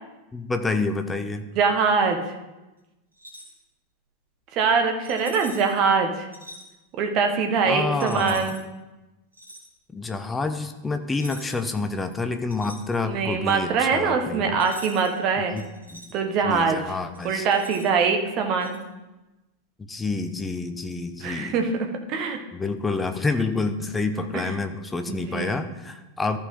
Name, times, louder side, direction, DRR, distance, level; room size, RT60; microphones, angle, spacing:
voice 1, 0.3-1.4 7.7-8.6 9.9-14.6 15.5-15.6 15.9-16.0 16.4-17.5 19.8-21.5 22.5-26.4, left 3 dB, 10° left, 8 dB, 0.8 m, -28 dB
voice 2, 1.5-2.2 4.5-6.3 7.0-8.6 13.0-15.6 16.1-16.9 17.2-18.8 21.2-22.4 24.3-24.5 25.1-25.6, right 5 dB, 40° right, 4 dB, 1.5 m, -23 dB
sound 1, 3.1-3.6 5.0-5.8 6.3-6.6 8.0-8.6 9.3-9.7 11.1-11.7 12.1-13.3 14.6-15.1 15.6-16.1 17.1-18.0 18.6-18.8, equal, 80° right, 2.3 m, -44 dB
14.0 x 5.2 x 3.8 m, 1.1 s
figure-of-eight pair, 90°, 0 cm